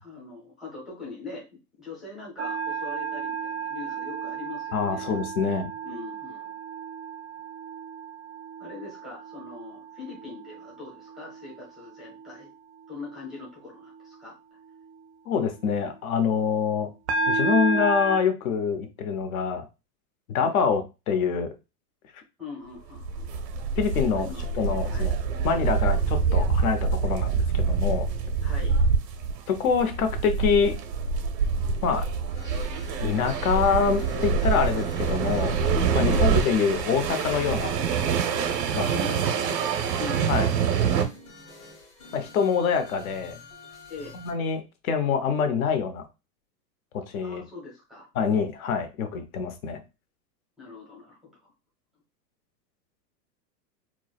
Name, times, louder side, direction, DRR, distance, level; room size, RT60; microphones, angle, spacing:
voice 1, 0.0-1.5 1.8-5.1 5.8-6.6 8.6-12.5 12.9-14.4 22.4-23.3 24.1-25.1 28.4-28.8 36.1-36.3 38.7-40.6 43.9-44.1 47.2-48.1 50.6-51.5, left 4 dB, ahead, -4 dB, 0.6 m, -42 dB
sound 1, 2.4-10.7 11.1-11.5 17.1-18.2, right 3 dB, 45° right, 0.4 m, -31 dB
voice 2, 4.7-5.7 15.3-16.9 17.3-19.7 20.3-21.5 22.1-22.2 23.8-24.3 24.6-25.2 25.4-28.1 29.5-30.8 31.8-32.1 33.0-35.6 35.9-37.7 38.7-38.9 40.3-40.5 42.1-43.4 44.1-46.0 46.9-47.4 48.2-49.8, left 6 dB, 60° left, 8 dB, 0.8 m, -25 dB
sound 2, 23.0-41.0, right 5 dB, 85° right, 0.7 m, -26 dB
sound 3, 32.3-44.3, left 2 dB, 40° left, 1.5 m, -48 dB
4.6 x 2.1 x 2.3 m, 0.27 s
hypercardioid pair, 145°, 49 cm